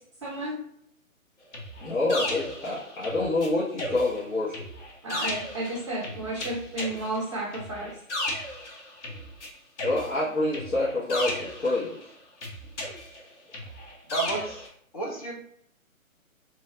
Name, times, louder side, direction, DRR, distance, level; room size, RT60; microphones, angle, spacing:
voice 1, 0.2-0.6 5.0-7.9, right 1 dB, 20° right, -6 dB, 0.6 m, -32 dB
sound 1, 1.5-3.5 3.8-9.5 9.8-12.0 12.4-14.7, left 1 dB, 55° left, 0.9 m, -35 dB
voice 2, 1.8-4.6 9.8-12.0, left 2 dB, 75° left, -8 dB, 1.2 m, -27 dB
voice 3, 14.1-14.6 14.9-15.3, right 2 dB, 30° left, -1 dB, 0.5 m, -31 dB
3.0 x 2.3 x 2.8 m, 0.67 s
figure-of-eight pair, 145°, 42 cm